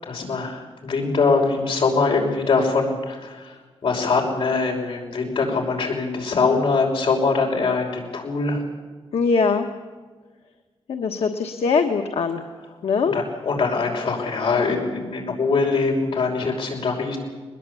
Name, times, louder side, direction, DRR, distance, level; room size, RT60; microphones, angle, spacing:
voice 1, 0.1-3.5 3.8-8.6 13.1-17.2, left 4 dB, 65° left, 0 dB, 5.7 m, -22 dB
voice 2, 9.1-9.7 10.9-12.4 12.8-13.2, left 5 dB, 80° left, 4 dB, 1.3 m, -21 dB
21.5 x 20.5 x 8.5 m, 1.4 s
wide cardioid pair, 170°, 10 cm